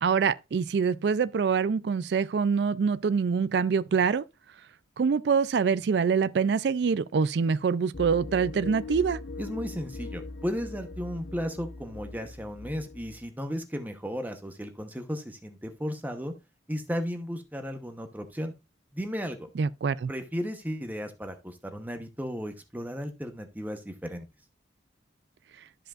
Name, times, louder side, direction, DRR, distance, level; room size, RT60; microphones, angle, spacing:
voice 1, 0.0-4.2 5.0-9.2 19.6-20.1, right 6 dB, 65° right, 0.4 m, -25 dB
sound 1, 7.9-13.3, left 3 dB, 85° left, 0.7 m, -40 dB
voice 2, 9.4-16.3 16.7-18.5 18.9-19.5 20.1-24.2, equal, 10° right, 0.8 m, -35 dB
12.5 x 5.2 x 2.4 m
head